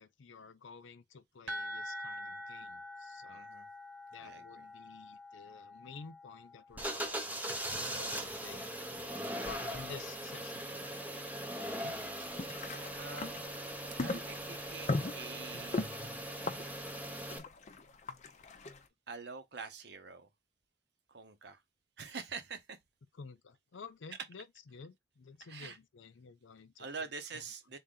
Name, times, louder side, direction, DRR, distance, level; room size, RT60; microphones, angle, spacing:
voice 1, 0.0-3.5 4.1-8.7 9.4-11.0 11.6-12.0 23.1-24.4 24.7-26.9, left 5 dB, 85° left, 0.5 m, -51 dB
sound 1, 1.5-7.1, equal, 80° right, 1.3 m, -46 dB
voice 2, 3.3-3.7 4.2-4.7 12.7-13.4 14.0-16.2 19.1-20.3 21.1-21.6 22.0-22.8 25.4-25.8 26.8-27.8, right 4 dB, 60° right, 0.8 m, -46 dB
sound 2, 6.7-17.4, right 1 dB, 10° right, 0.6 m, -40 dB
sound 3, 12.3-18.8, left 2 dB, 40° left, 0.5 m, -39 dB
3.8 x 2.7 x 3.7 m
head